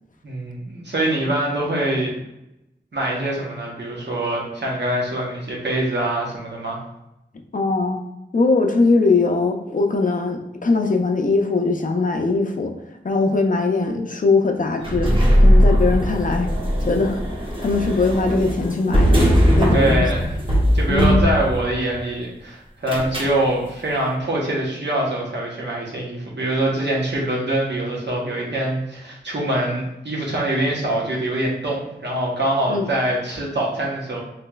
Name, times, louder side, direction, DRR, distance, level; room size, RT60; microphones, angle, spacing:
voice 1, 0.2-2.1 2.9-6.8 19.7-20.3 20.7-34.2, right 1 dB, 70° right, -3 dB, 0.9 m, -24 dB
voice 2, 7.5-8.0 8.3-12.7 13.0-15.1 15.4-16.5 16.8-19.3 19.6-20.1 20.9-21.2 32.7-32.9, left 3 dB, 45° left, 3 dB, 0.4 m, -20 dB
sound 1, 14.8-21.9 22.9-23.4, equal, 30° right, 0.9 m, -19 dB
3.2 x 2.9 x 2.3 m, 0.89 s
wide cardioid pair, 60°, 19 cm